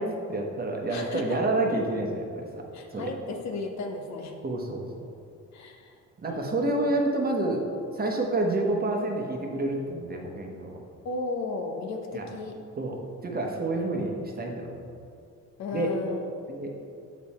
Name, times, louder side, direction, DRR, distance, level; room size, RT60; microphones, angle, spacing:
voice 1, 0.0-2.6 2.9-3.1 4.4-5.1 6.2-7.6 7.9-10.8 12.1-12.3 12.8-14.8 15.7-15.9 16.5-16.8, right 2 dB, 30° right, 1 dB, 1.0 m, -29 dB
voice 2, 0.9-1.4 2.7-4.3 5.5-6.0 6.2-6.7 11.0-12.6 15.6-16.2, left 3 dB, 65° left, 3 dB, 0.9 m, -34 dB
7.0 x 4.2 x 4.2 m, 2.5 s
cardioid pair, 90°, 30 cm